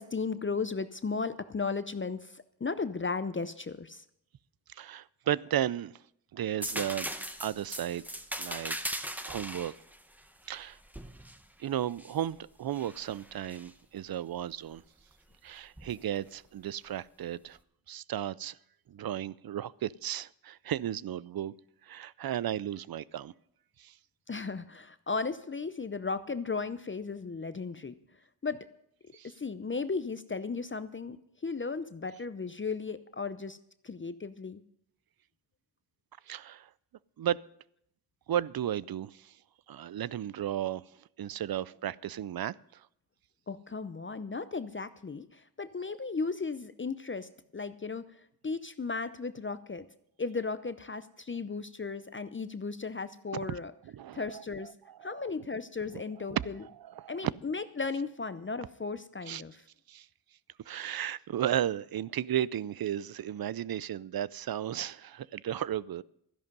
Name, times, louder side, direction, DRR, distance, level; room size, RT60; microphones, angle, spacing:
voice 1, 0.0-4.0 24.3-27.9 28.4-28.7 29.2-33.6 33.8-34.6 43.5-48.1 48.4-49.9 50.2-53.7 54.1-54.7 55.0-56.6 57.1-59.6, left 4 dB, 30° left, 0.6 m, -35 dB
voice 2, 4.7-6.0 6.3-8.0 8.4-8.8 9.3-9.7 10.5-10.8 11.6-14.8 15.4-17.6 17.9-18.6 18.9-21.5 21.8-23.3 23.8-24.0 29.1-29.3 36.3-36.7 37.2-37.4 38.3-39.4 39.7-40.8 41.2-42.9 53.3-53.6 53.9-55.2 55.9-56.0 56.6-57.3 59.3-59.4 59.9-60.1 60.7-66.0, right 11 dB, 60° right, 0.5 m, -34 dB
sound 1, 6.6-12.2 12.7-13.7 15.8-15.9, equal, 5° right, 0.9 m, -39 dB
13.0 x 11.0 x 5.3 m
cardioid pair, 65°, 42 cm